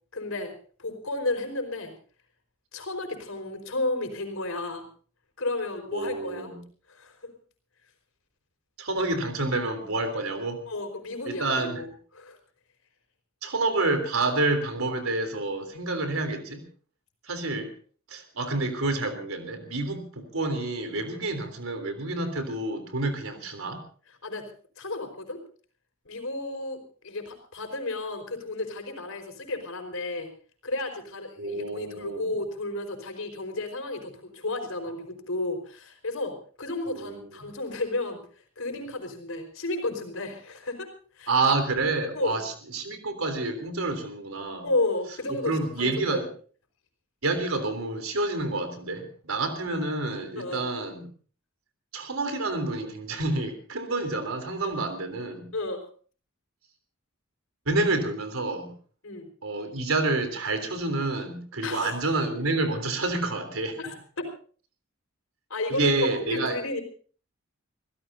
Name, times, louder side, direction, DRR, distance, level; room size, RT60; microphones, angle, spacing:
voice 1, 0.1-0.5 0.8-1.9 2.7-4.9 5.4-6.5 6.9-7.3 10.7-12.4 21.1-21.3 24.2-24.5 24.8-25.4 26.0-30.3 30.6-38.2 38.6-41.4 42.1-42.4 44.6-46.3 50.4-50.6 54.6-54.7 55.5-55.8 59.0-59.3 61.6-62.0 63.8-64.3 65.5-65.9 66.3-66.8, left 2 dB, 80° left, 6 dB, 4.7 m, -32 dB
voice 2, 5.9-6.6 8.8-10.6 11.3-11.8 13.4-16.6 17.2-17.7 18.1-23.8 31.4-32.3 37.0-37.3 41.3-44.7 45.5-46.3 47.2-51.0 51.9-55.5 57.7-58.7 59.4-63.8 65.7-66.6, right 2 dB, 85° right, 7 dB, 3.6 m, -28 dB
26.5 x 16.5 x 2.7 m, 0.41 s
head